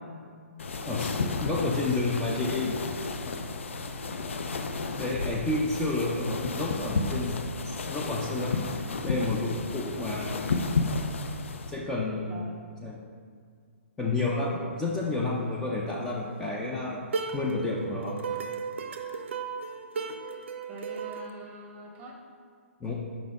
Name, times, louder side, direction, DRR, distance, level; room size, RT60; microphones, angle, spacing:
sound 1, 0.6-11.8, left 3 dB, 65° left, 0.4 m, -32 dB
voice 1, 0.8-2.8 5.0-8.6 9.0-10.4 11.7-12.3 12.8-13.0 14.0-17.0 17.3-18.2 22.8-22.9, left 2 dB, 10° left, -4 dB, 0.5 m, -30 dB
voice 2, 12.3-12.6 14.6-14.8 20.7-22.2, right 1 dB, 20° right, 1 dB, 0.8 m, -44 dB
sound 2, 17.1-21.3, right 5 dB, 55° right, 0.5 m, -35 dB
5.1 x 4.0 x 4.7 m, 2.1 s
figure-of-eight pair, 125°, 7 cm